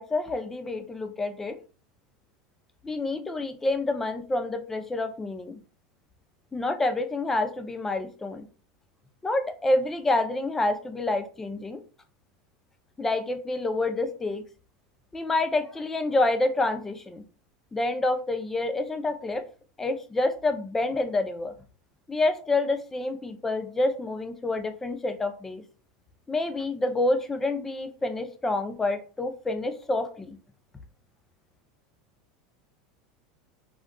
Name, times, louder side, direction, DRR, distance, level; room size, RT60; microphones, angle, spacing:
voice 1, 0.0-1.6 2.8-5.6 6.5-8.4 9.2-11.8 13.0-14.4 15.1-17.2 17.7-19.4 19.8-21.5 22.1-25.6 26.3-30.4, left 2 dB, 15° left, 8 dB, 0.4 m, -28 dB
3.6 x 2.3 x 2.2 m, 0.38 s
supercardioid pair, 115°, 2 cm